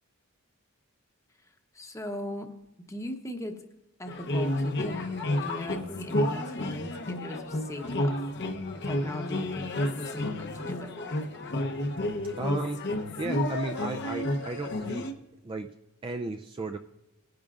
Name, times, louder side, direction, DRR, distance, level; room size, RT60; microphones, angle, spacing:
voice 1, 1.7-2.5 2.9-3.6 4.0-5.1 5.4-8.2 8.7-10.9, left 1 dB, 15° left, 5 dB, 0.9 m, -39 dB
sound 1, 4.1-15.1, left 1 dB, 50° left, 0.8 m, -31 dB
voice 2, 12.3-12.8 13.2-15.1 15.4-15.7 16.0-16.8, right 2 dB, 25° right, 5 dB, 0.4 m, -34 dB
19.5 x 10.5 x 2.4 m, 0.94 s
head